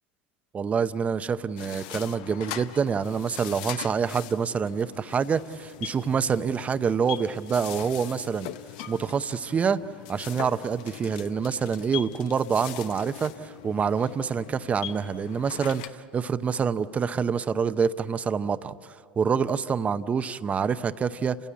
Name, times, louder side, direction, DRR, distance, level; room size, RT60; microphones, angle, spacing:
voice 1, 0.5-8.5 8.9-9.8 10.1-18.7 19.2-21.4, right 6 dB, 25° right, 13 dB, 0.7 m, -26 dB
sound 1, 1.6-15.9, left 12 dB, 70° left, 0.8 m, -41 dB
28.5 x 16.0 x 8.4 m, 2.5 s
hypercardioid pair, 100°, 5 cm